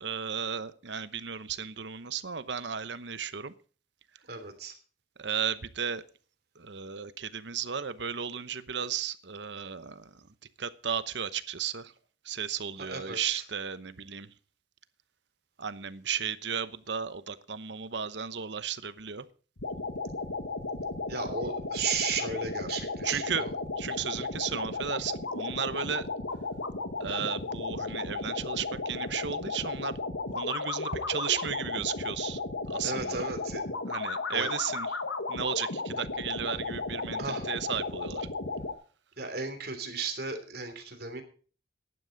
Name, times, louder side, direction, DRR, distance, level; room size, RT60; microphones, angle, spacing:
voice 1, 0.0-3.5 5.2-6.0 6.6-10.3 10.6-11.9 12.2-14.3 15.6-19.3 23.0-23.4 23.8-26.1 27.0-29.9 30.3-32.4 32.7-33.2 33.8-34.9 35.3-38.3, right 7 dB, 70° right, 0.9 m, -34 dB
voice 2, 4.3-4.7 12.8-13.4 21.1-23.5 32.8-33.6 34.3-34.5 37.2-37.4 39.2-41.2, right 4 dB, 55° right, 3.2 m, -35 dB
sound 1, 19.6-38.7, left 3 dB, 85° left, 1.7 m, -34 dB
15.0 x 11.0 x 3.9 m
head